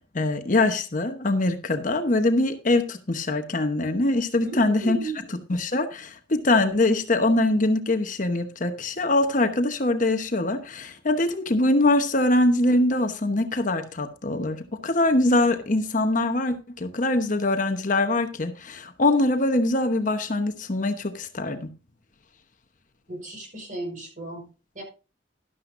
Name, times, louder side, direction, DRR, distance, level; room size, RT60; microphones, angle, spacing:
voice 1, 0.1-5.0 5.3-21.7, left 2 dB, 45° left, 8 dB, 1.0 m, -23 dB
voice 2, 4.4-5.2 23.1-24.5 24.7-24.8, right 3 dB, 45° right, 2 dB, 4.9 m, -35 dB
12.0 x 12.0 x 2.6 m, 0.31 s
head